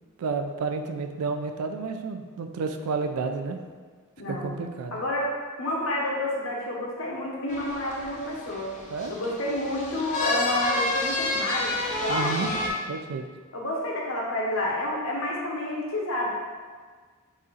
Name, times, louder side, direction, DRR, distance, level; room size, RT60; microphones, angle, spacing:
voice 1, 0.2-3.6 4.3-5.0 8.9-9.1 12.1-12.5 12.9-13.2, right 4 dB, 80° right, 6 dB, 0.3 m, -31 dB
voice 2, 4.2-4.5 4.9-5.3 5.6-8.8 9.1-12.7 13.5-16.3, left 1 dB, 65° left, -2 dB, 0.8 m, -29 dB
sound 1, 7.5-12.7, left 2 dB, 35° left, 0.5 m, -30 dB
4.2 x 2.4 x 3.8 m, 1.5 s
head